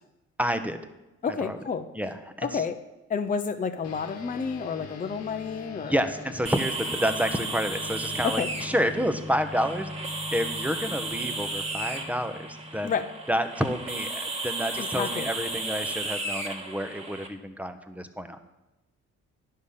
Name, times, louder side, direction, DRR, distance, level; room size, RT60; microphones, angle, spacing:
voice 1, 0.4-0.8 1.4-1.6 1.9-2.6 5.8-9.9 10.3-13.0 13.3-18.4, equal, 5° right, 9 dB, 0.8 m, -29 dB
voice 2, 1.2-1.8 2.4-2.7 3.1-5.9 8.2-8.5 12.8-13.0 14.8-15.3, left 6 dB, 30° left, 6 dB, 0.6 m, -30 dB
sound 1, 3.8-13.6, left 3 dB, 60° left, 1.2 m, -42 dB
sound 2, 6.5-17.3, right 2 dB, 20° right, 1.3 m, -34 dB
10.5 x 5.6 x 6.6 m, 1.0 s
cardioid pair, 90°, 30 cm